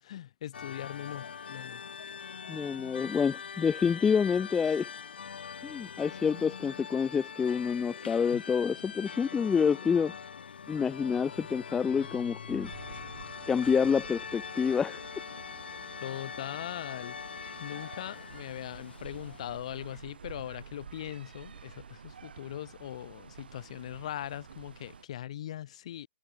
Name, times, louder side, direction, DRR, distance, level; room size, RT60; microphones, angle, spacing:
voice 1, 0.0-1.8 8.3-8.4 16.0-26.1, left 12 dB, 35° left, 2.2 m, -40 dB
sound 1, 0.5-20.0, left 6 dB, 65° left, 2.0 m, -43 dB
voice 2, 2.5-4.9 5.6-10.1 10.7-12.7 13.5-15.0, left 6 dB, 5° left, 0.7 m, -28 dB
sound 2, 12.5-25.0, right 7 dB, 60° right, 5.5 m, -49 dB
hypercardioid pair, 170°, 6 cm